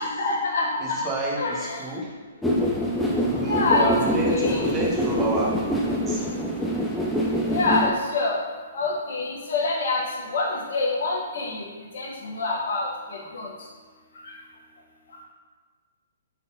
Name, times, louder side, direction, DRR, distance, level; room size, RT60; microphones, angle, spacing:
voice 1, 0.0-1.0 1.3-1.9 3.4-4.6 7.4-8.4 8.7-11.6 11.9-13.5 14.2-14.3, left 3 dB, 60° left, -3 dB, 1.0 m, -26 dB
voice 2, 0.8-2.1 3.2-6.3, right 2 dB, 20° right, -4 dB, 1.0 m, -29 dB
sound 1, 2.4-7.9, equal, ahead, 0.5 m, -25 dB
3.9 x 3.6 x 2.7 m, 1.4 s
hypercardioid pair, 130°, 0 cm